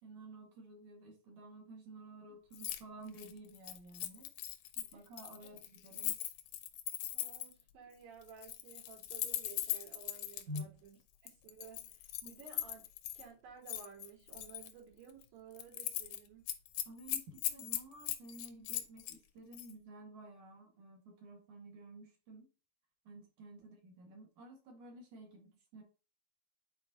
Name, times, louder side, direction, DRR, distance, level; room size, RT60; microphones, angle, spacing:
voice 1, 0.0-4.3 4.8-6.2 10.5-10.7 12.2-12.3 16.9-22.5 23.0-25.8, right 1 dB, 50° right, 2.7 m, -51 dB
Keys jangling, 2.5-2.8 3.1-7.6 8.3-10.6 11.3-13.2 13.7-14.7 15.1-15.2 15.5-16.2 16.5-19.2 19.5-19.7, left 13 dB, 80° left, 2.3 m, -40 dB
voice 2, 7.1-10.9 11.2-16.5, right 7 dB, 85° right, 6.0 m, -55 dB
9.8 x 4.6 x 2.8 m
omnidirectional pair, 5.1 m